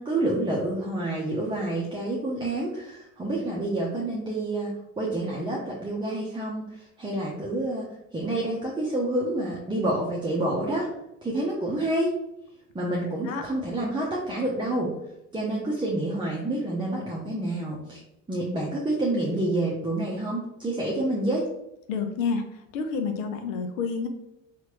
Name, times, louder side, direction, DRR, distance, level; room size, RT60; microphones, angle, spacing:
voice 1, 0.0-10.9 11.2-12.1 12.7-14.9 15.3-18.0 18.3-21.5, right 1 dB, 15° right, -3 dB, 0.7 m, -28 dB
voice 2, 21.9-22.4 22.7-24.1, left 5 dB, 85° left, 6 dB, 0.6 m, -28 dB
3.0 x 2.5 x 2.9 m, 0.85 s
hypercardioid pair, 65°, 37 cm